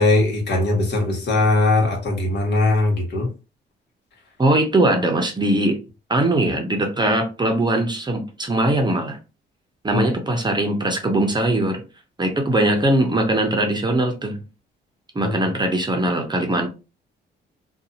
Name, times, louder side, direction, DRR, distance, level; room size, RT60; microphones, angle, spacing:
voice 1, 0.0-3.3 9.9-10.0 15.2-15.3, left 2 dB, 60° left, 1.3 m, -20 dB
voice 2, 4.4-5.8 6.1-9.2 9.8-11.8 12.2-14.4 15.1-16.7, right 1 dB, 20° right, 0.7 m, -20 dB
2.6 x 2.3 x 2.7 m
cardioid pair, 85°, 19 cm